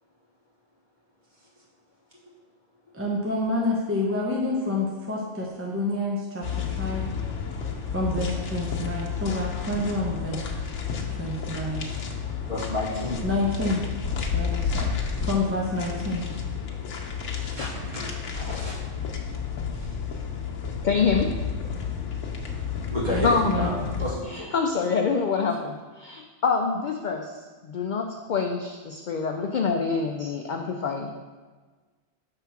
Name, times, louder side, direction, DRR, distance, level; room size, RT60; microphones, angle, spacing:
voice 1, 2.9-7.1 7.9-10.4 11.2-11.8 13.2-13.8 14.3-14.9 15.2-16.2 23.1-23.8, left 2 dB, 15° right, -4 dB, 0.7 m, -28 dB
sound 1, 6.4-24.1, left 6 dB, 80° left, 1.1 m, -31 dB
voice 2, 12.5-13.2 17.5-18.8 19.7-20.0 22.9-23.7 24.0-24.5 30.2-30.3, left 1 dB, 40° right, -6 dB, 1.8 m, -31 dB
voice 3, 20.8-21.3 23.2-23.8 24.3-31.1, left 5 dB, 60° left, 3 dB, 0.5 m, -26 dB
5.8 x 3.5 x 5.8 m, 1.4 s
omnidirectional pair, 1.2 m